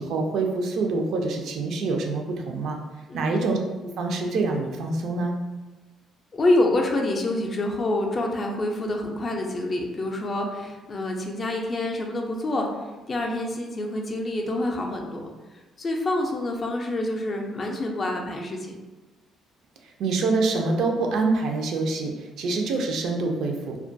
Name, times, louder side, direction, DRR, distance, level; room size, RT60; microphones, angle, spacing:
voice 1, 0.0-2.8 3.1-3.6 4.0-5.3 20.0-23.8, right 3 dB, 75° right, 3 dB, 0.3 m, -25 dB
voice 2, 3.1-3.5 6.3-15.3 15.8-18.7, left 1 dB, 35° left, 1 dB, 0.4 m, -27 dB
2.2 x 2.1 x 2.5 m, 1.2 s
cardioid pair, 110°, 0 cm